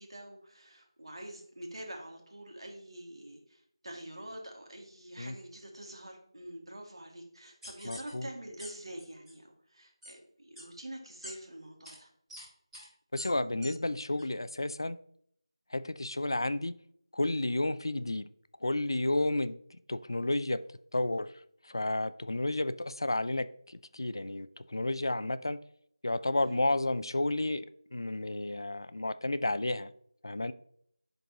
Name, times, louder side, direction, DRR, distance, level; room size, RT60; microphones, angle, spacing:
voice 1, 0.0-12.1 26.4-26.6, right 1 dB, 65° right, 1 dB, 2.0 m, -46 dB
sound 1, 7.6-8.1 8.6-8.7 9.0-9.3 10.0-10.1 10.5-10.6 11.2-11.3 11.8-11.9 12.3-12.4 12.7-12.8 13.2-13.3 13.6-13.7 14.2-14.3, equal, ahead, 1.7 m, -45 dB
voice 2, 7.8-8.3 13.1-15.0 15.7-16.7 17.1-18.3 18.6-19.6 19.9-20.6 20.9-21.3 21.6-25.6 26.0-27.6 27.9-29.9 30.2-30.5, left 2 dB, 55° left, 14 dB, 0.4 m, -31 dB
10.5 x 3.9 x 2.9 m, 0.66 s
figure-of-eight pair, 180°, 3 cm